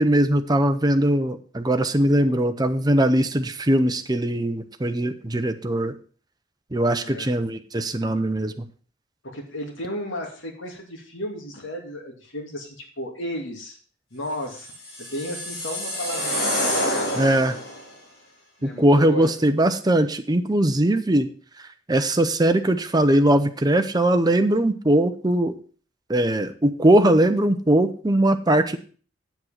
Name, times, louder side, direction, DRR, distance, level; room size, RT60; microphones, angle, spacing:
voice 1, 0.0-5.9 6.7-8.6 17.1-17.6 18.6-21.3 21.9-25.5 26.1-28.8, right 1 dB, 20° right, 8 dB, 0.7 m, -20 dB
voice 2, 6.9-7.3 9.2-13.8 14.1-14.7 15.0-16.8 18.6-19.3, equal, 75° left, 2 dB, 2.4 m, -34 dB
sound 1, 14.6-17.8, equal, 55° left, 3.8 m, -27 dB
8.0 x 7.4 x 5.7 m, 0.41 s
head